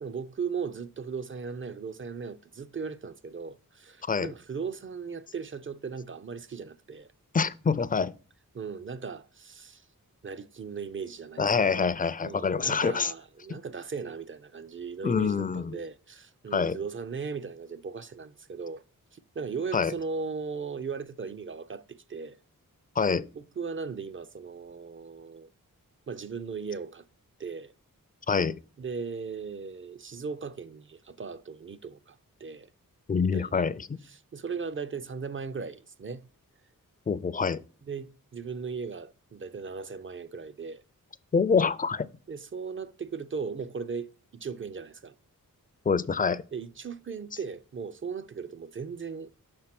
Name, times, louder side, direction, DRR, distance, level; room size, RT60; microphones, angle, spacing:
voice 1, 0.0-7.1 8.5-9.8 10.2-11.9 12.2-18.8 19.1-22.4 23.3-25.5 26.1-27.0 27.4-27.7 28.8-32.7 33.2-33.6 34.1-36.3 37.9-40.8 42.3-45.1 46.5-49.3, right 5 dB, 35° right, 0.4 m, -37 dB
voice 2, 4.0-4.3 7.3-8.1 11.4-13.1 13.5-13.6 15.0-15.8 16.5-16.8 19.7-19.9 23.0-23.3 28.3-28.6 33.1-34.0 37.1-37.6 41.3-42.1 45.9-46.4, left 5 dB, 25° left, 0.3 m, -26 dB
5.8 x 4.4 x 5.8 m
wide cardioid pair, 85°, 34 cm